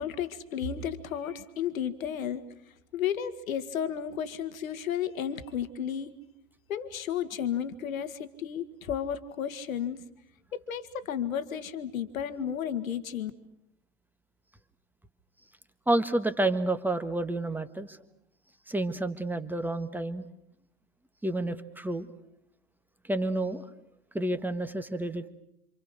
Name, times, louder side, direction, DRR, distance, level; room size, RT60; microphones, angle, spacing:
voice 1, 0.0-2.4 2.9-6.1 6.7-10.0 10.5-13.3, left 9 dB, 70° left, 10 dB, 1.9 m, -33 dB
voice 2, 15.9-18.0 18.7-20.3 21.2-22.1 23.1-23.7 24.1-25.3, right 1 dB, 5° right, 10 dB, 1.5 m, -29 dB
27.5 x 27.0 x 6.5 m, 0.78 s
figure-of-eight pair, 90°, 43 cm